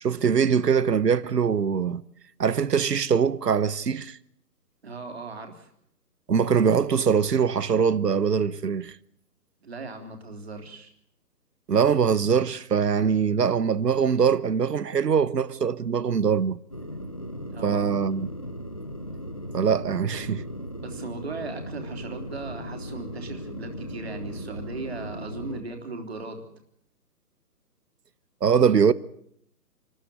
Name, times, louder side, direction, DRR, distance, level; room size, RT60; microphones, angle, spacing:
voice 1, 0.0-2.0 2.4-4.2 6.3-9.0 11.7-16.6 17.6-18.3 19.5-20.4 28.4-28.9, right 6 dB, 70° right, 1.2 m, -22 dB
voice 2, 4.8-5.7 9.6-10.9 17.5-17.9 20.8-26.5, right 3 dB, 40° right, 3.4 m, -37 dB
sound 1, 16.7-25.6, equal, 20° left, 0.8 m, -37 dB
28.0 x 13.5 x 9.5 m
hypercardioid pair, 175°, 49 cm